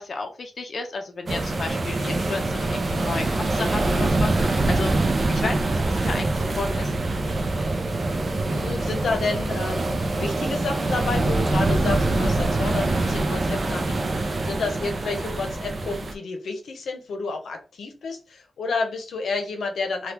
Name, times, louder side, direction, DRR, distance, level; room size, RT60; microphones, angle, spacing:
voice 1, 0.0-5.0 5.3-7.1, left 3 dB, 45° left, 4 dB, 0.6 m, -33 dB
sound 1, 1.3-16.1, right 2 dB, 35° right, 0.5 m, -24 dB
voice 2, 8.1-20.1, left 3 dB, 85° left, 4 dB, 0.7 m, -30 dB
3.4 x 2.3 x 2.9 m, 0.33 s
wide cardioid pair, 160°, 0 cm